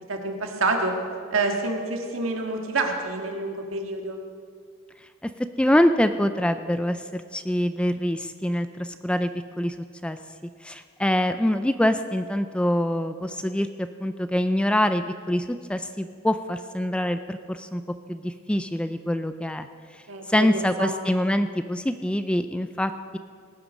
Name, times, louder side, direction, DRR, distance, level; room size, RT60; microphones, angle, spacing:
voice 1, 0.1-0.9 1.3-4.2 20.1-20.9, right 3 dB, 75° right, 2 dB, 1.9 m, -27 dB
voice 2, 5.6-9.3 9.6-9.8 10.0-10.2 10.6-17.8 18.1-19.7 19.9-20.0 20.3-23.2, left 1 dB, 5° left, 10 dB, 0.3 m, -25 dB
18.5 x 9.0 x 6.4 m, 2.1 s
head